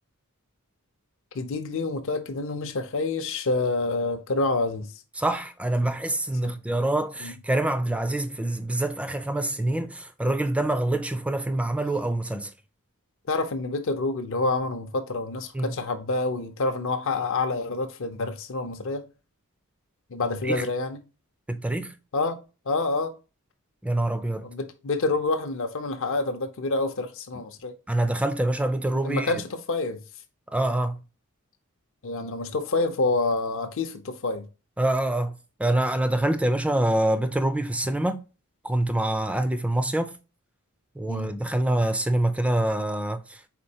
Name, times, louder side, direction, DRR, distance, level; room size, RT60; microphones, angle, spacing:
voice 1, 1.3-4.9 6.4-6.6 7.2-7.3 13.3-19.0 20.1-21.0 22.1-22.4 22.7-23.1 24.4-27.7 29.0-30.0 32.0-34.4 41.1-41.3, left 3 dB, 60° left, 0.6 m, -27 dB
voice 2, 5.2-12.5 15.5-15.7 20.4-20.6 21.5-21.9 23.8-24.5 27.9-29.3 30.5-31.0 34.8-35.3 35.6-38.2 38.6-40.1 41.0-43.5, right 1 dB, 5° right, 0.3 m, -25 dB
4.3 x 3.9 x 2.8 m
head